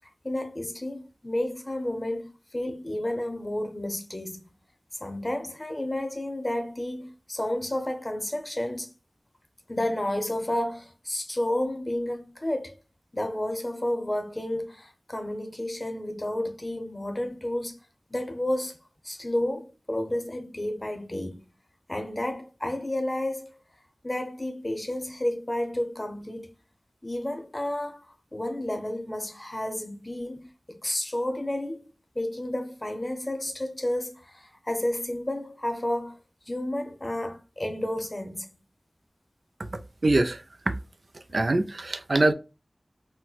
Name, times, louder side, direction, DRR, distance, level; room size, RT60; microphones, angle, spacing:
voice 1, 0.2-4.4 4.9-8.9 9.7-12.8 13.1-17.8 18.1-18.8 19.0-21.5 21.9-23.5 24.0-26.5 27.0-36.2 36.5-38.6, left 1 dB, 30° left, 0.7 m, -31 dB
voice 2, 40.0-40.7 41.1-42.3, right 2 dB, 65° right, 0.4 m, -24 dB
4.2 x 2.1 x 2.3 m
wide cardioid pair, 65°, 0 cm